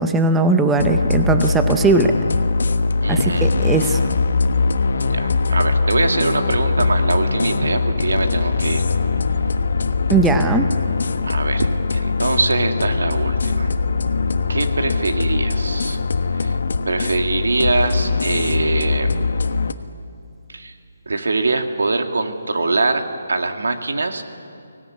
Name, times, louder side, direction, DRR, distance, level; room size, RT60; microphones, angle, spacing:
voice 1, 0.0-2.1 3.1-4.0 10.1-10.7, right 3 dB, 5° right, 7 dB, 0.6 m, -18 dB
sound 1, 0.8-19.7, left 4 dB, 60° left, 1.2 m, -21 dB
voice 2, 3.0-3.6 5.0-8.8 11.2-13.7 14.5-16.0 16.4-16.5 16.9-19.1 20.5-20.7 21.1-24.2, right 3 dB, 90° right, 5 dB, 2.3 m, -23 dB
24.0 x 17.5 x 9.7 m, 2.5 s
hypercardioid pair, 175°, 0 cm